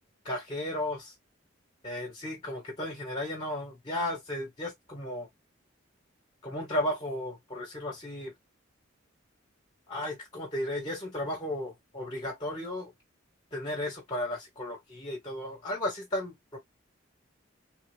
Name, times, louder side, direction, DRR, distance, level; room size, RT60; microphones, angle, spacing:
voice 1, 0.2-1.1 1.8-5.3 6.4-8.3 9.9-12.9 13.5-16.6, left 1 dB, 30° left, 1.2 m, -34 dB
3.4 x 2.3 x 3.2 m
head